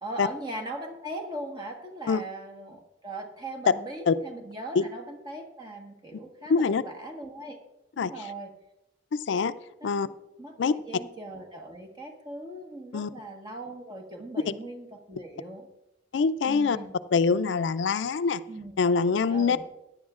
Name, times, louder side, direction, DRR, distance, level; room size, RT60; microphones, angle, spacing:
voice 1, 0.0-7.6 7.9-8.5 9.8-9.9 10.4-15.7 16.5-16.9 18.5-18.7 19.3-19.6, right 1 dB, 25° right, 3 dB, 1.3 m, -39 dB
voice 2, 6.5-6.8 8.0-8.1 9.1-9.5 9.8-10.1 10.6-10.7 12.9-13.1 14.5-14.6 16.1-16.8 17.1-18.4 18.8-19.6, left 5 dB, 90° left, 14 dB, 0.4 m, -24 dB
16.0 x 10.0 x 2.4 m, 0.92 s
head